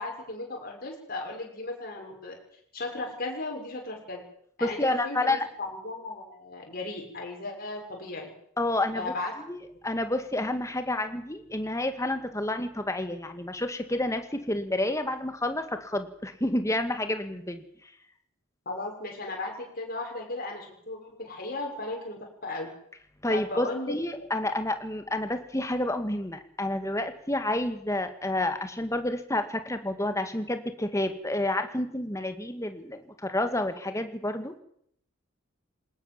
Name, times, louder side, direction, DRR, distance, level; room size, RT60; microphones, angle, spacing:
voice 1, 0.0-2.4 2.7-4.2 4.6-8.3 8.9-9.4 18.7-22.7 23.3-24.0, left 2 dB, 45° left, 0 dB, 6.9 m, -36 dB
voice 2, 4.6-5.4 8.6-9.1 9.5-17.6 23.2-34.5, left 1 dB, 15° left, 8 dB, 1.9 m, -29 dB
21.5 x 19.5 x 7.6 m, 0.69 s
head